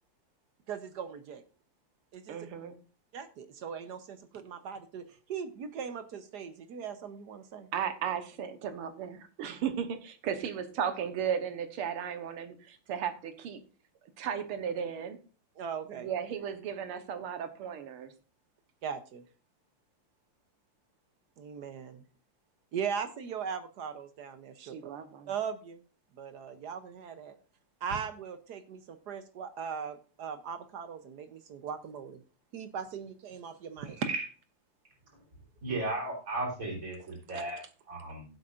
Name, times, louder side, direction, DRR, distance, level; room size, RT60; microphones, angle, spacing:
voice 1, 0.7-1.4 2.1-2.4 3.1-7.7 15.6-16.1 18.8-19.2 21.4-22.0 22.7-24.9 25.3-25.8 26.1-27.4 27.8-32.2 32.5-34.0, right 7 dB, 65° right, 10 dB, 1.1 m, -39 dB
voice 2, 2.3-2.8 7.7-13.6 14.2-15.2 15.9-18.1 24.6-25.3 37.3-37.7, right 8 dB, 80° right, 9 dB, 2.0 m, -35 dB
voice 3, 33.8-34.3 35.6-37.6 37.9-38.3, right 2 dB, 40° right, -1 dB, 4.0 m, -35 dB
15.5 x 7.8 x 2.5 m, 0.36 s
omnidirectional pair, 2.4 m